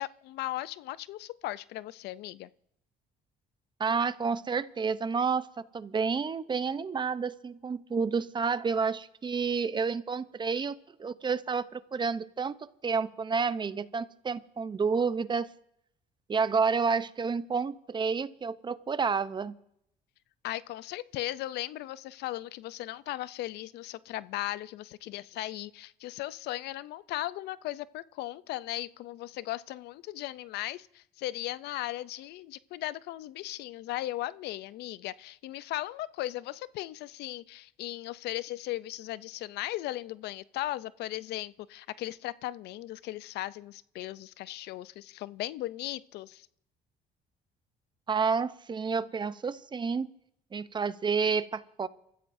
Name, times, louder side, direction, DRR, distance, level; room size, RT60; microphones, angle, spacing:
voice 1, 0.0-2.5 20.4-46.5, left 15 dB, 75° left, 0.5 m, -37 dB
voice 2, 3.8-15.5 16.3-19.5 48.1-50.1 50.5-51.9, right 5 dB, 25° right, 0.7 m, -30 dB
28.5 x 14.5 x 2.6 m
cardioid pair, 110°, 17 cm